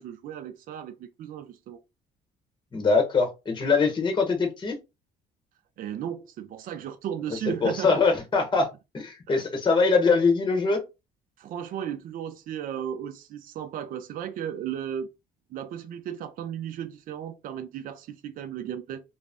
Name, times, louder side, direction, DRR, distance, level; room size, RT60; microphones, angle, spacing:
voice 1, 0.0-1.8 5.8-8.0 9.3-9.4 11.4-15.1 15.5-19.0, right 9 dB, 55° right, 0.4 m, -35 dB
voice 2, 2.7-4.8 7.6-8.7 8.9-10.8, left 4 dB, 25° left, 0.8 m, -23 dB
2.5 x 2.0 x 3.4 m
cardioid pair, 110°, 17 cm